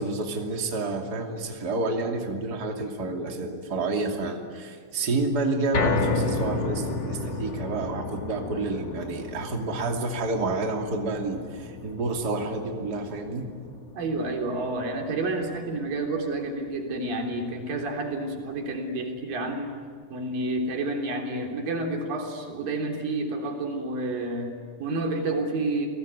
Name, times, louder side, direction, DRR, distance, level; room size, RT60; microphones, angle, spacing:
voice 1, 0.0-13.5, right 3 dB, 30° right, 2 dB, 3.0 m, -29 dB
sound 1, 5.7-18.0 18.4-18.5 18.9-19.0, left 3 dB, 35° left, 2.3 m, -33 dB
voice 2, 13.9-19.8 20.1-25.9, right 2 dB, 90° right, 2 dB, 5.2 m, -29 dB
29.5 x 20.0 x 9.6 m, 2.1 s
omnidirectional pair, 3.9 m